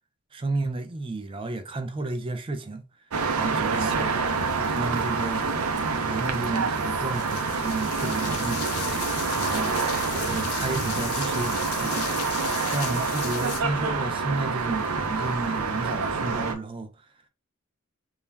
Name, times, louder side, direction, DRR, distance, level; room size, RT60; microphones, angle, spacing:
voice 1, 0.3-2.9 3.3-4.2 4.5-5.4 6.0-8.7 9.4-9.7 10.2-12.2 12.7-16.9, right 2 dB, 25° right, 0.4 m, -32 dB
sound 1, 3.1-16.5, right 4 dB, 80° right, 0.5 m, -27 dB
sound 2, 7.1-13.6, left 9 dB, 80° left, 0.4 m, -36 dB
2.3 x 2.1 x 3.2 m
head